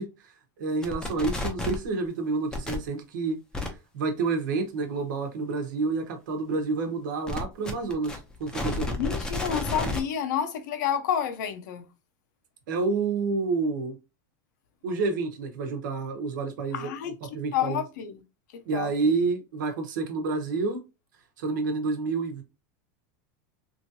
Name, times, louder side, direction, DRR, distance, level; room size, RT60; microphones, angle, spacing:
voice 1, 0.0-9.0 12.7-14.0 14.8-16.9 17.2-17.8 18.7-20.8 21.4-22.4, right 4 dB, 80° right, 1.0 m, -29 dB
sound 1, 0.8-1.8 2.5-2.8 3.5-3.7 7.3-10.0, left 2 dB, 5° left, 0.6 m, -31 dB
voice 2, 9.0-11.9 16.7-18.2 18.5-19.1, left 9 dB, 75° left, 0.7 m, -30 dB
3.1 x 2.7 x 2.6 m
supercardioid pair, 155°, 10 cm